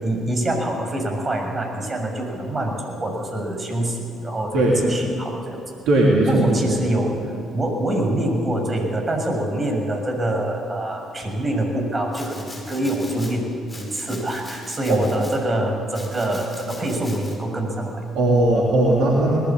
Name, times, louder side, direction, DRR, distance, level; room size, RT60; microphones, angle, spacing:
voice 1, 0.0-5.6 6.2-7.1 7.5-13.5 13.7-18.0, right 1 dB, 30° right, 2 dB, 6.7 m, -25 dB
voice 2, 5.9-6.8 14.9-15.0 18.2-19.4, right 1 dB, 60° right, -2 dB, 3.4 m, -18 dB
Domestic sounds home sounds, 12.1-13.3 13.7-15.4 15.9-17.4, left 2 dB, 25° left, 6.3 m, -41 dB
22.0 x 19.5 x 8.6 m, 2.3 s
figure-of-eight pair, 45°, 0 cm